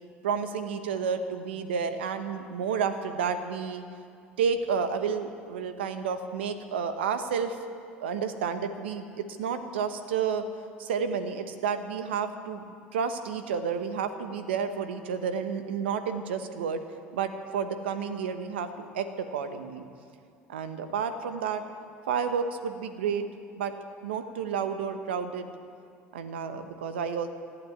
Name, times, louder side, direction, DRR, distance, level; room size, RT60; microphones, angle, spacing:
voice 1, 0.2-3.8 4.4-7.6 8.0-10.4 10.8-16.8 17.1-18.7 18.9-19.9 20.5-21.6 22.1-23.3 23.6-23.7 24.0-25.5 26.1-27.3, right 6 dB, 85° right, 9 dB, 1.1 m, -31 dB
15.0 x 8.6 x 9.5 m, 2.5 s
hypercardioid pair, 75°, 6 cm